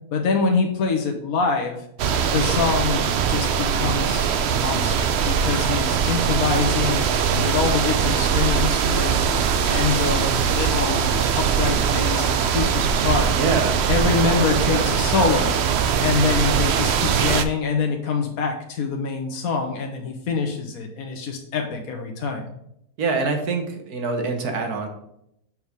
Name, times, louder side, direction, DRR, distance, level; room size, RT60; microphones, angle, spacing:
voice 1, 0.1-1.8 2.3-13.3 13.9-15.6 16.0-22.4, left 5 dB, 70° left, 2 dB, 1.5 m, -25 dB
sound 1, 2.0-17.5, right 7 dB, 60° right, 0.7 m, -21 dB
voice 2, 13.3-13.9 14.2-14.4 14.7-14.9 23.0-24.9, right 4 dB, 85° right, 4 dB, 1.8 m, -25 dB
7.1 x 4.7 x 5.1 m, 0.76 s
omnidirectional pair, 1.6 m